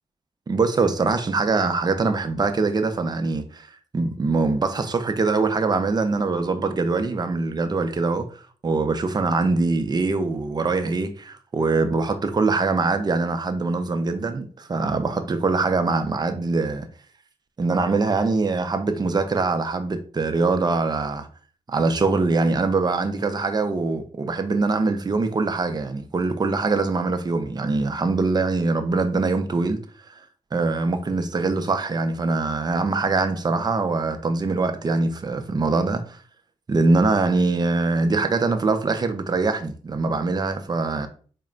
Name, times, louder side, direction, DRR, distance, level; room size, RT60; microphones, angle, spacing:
voice 1, 0.5-3.7 3.9-8.3 8.6-16.9 17.6-21.3 21.7-29.8 30.1-30.2 30.5-36.2 36.7-41.1, right 3 dB, 35° right, 0.5 m, -23 dB
4.2 x 2.1 x 3.8 m
cardioid pair, 80°, 12 cm